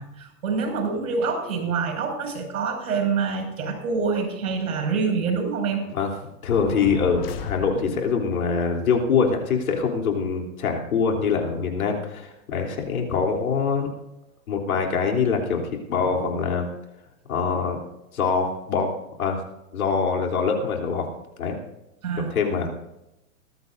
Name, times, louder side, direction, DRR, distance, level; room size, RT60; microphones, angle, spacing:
voice 1, 0.0-5.8 22.0-22.3, right 5 dB, 85° right, 4 dB, 5.9 m, -26 dB
voice 2, 6.4-13.9 14.5-16.7 17.3-17.8 18.1-18.9 19.2-19.4 19.7-21.1 21.4-21.5 22.2-22.7, left 5 dB, 90° left, 2 dB, 3.4 m, -24 dB
sound 1, 6.5-8.2, left 5 dB, 45° left, 1.5 m, -35 dB
20.0 x 14.5 x 2.6 m, 0.91 s
hypercardioid pair, 170°, 42 cm